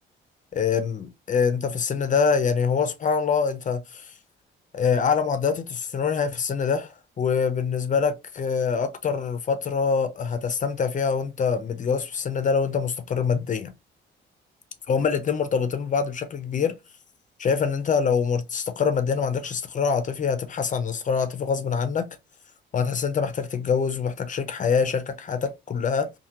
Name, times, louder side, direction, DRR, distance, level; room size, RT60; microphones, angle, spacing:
voice 1, 0.5-4.1 4.7-13.7 14.9-16.8 17.4-22.2 22.7-26.1, left 6 dB, 40° left, 0.5 m, -25 dB
2.8 x 2.6 x 2.4 m
cardioid pair, 90°, 20 cm